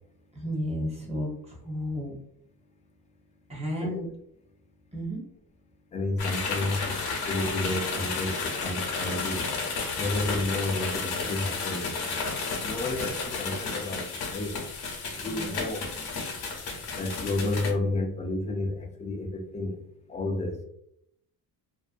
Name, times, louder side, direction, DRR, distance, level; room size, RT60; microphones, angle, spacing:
voice 1, 0.3-2.1 3.5-4.1 4.9-5.2 9.8-10.0 12.8-13.2 15.3-16.4, equal, 15° right, 0.8 m, -34 dB
voice 2, 5.9-9.4 10.0-12.3 12.6-14.5 15.2-15.9 17.0-19.8 20.1-20.6, left 2 dB, 20° left, 0.4 m, -31 dB
sound 1, 6.2-17.7, left 4 dB, 75° left, 0.8 m, -32 dB
2.5 x 2.1 x 2.4 m
cardioid pair, 125°, 38 cm